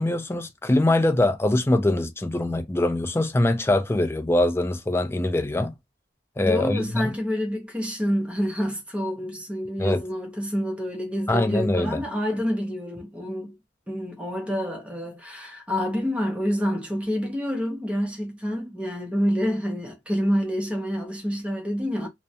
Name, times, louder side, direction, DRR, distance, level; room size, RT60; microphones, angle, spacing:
voice 1, 0.0-5.7 6.4-7.1 9.8-10.0 11.3-12.0, left 1 dB, 15° left, 0.4 m, -23 dB
voice 2, 6.4-13.6 13.9-22.1, equal, 5° right, 0.7 m, -27 dB
2.4 x 2.0 x 2.7 m
head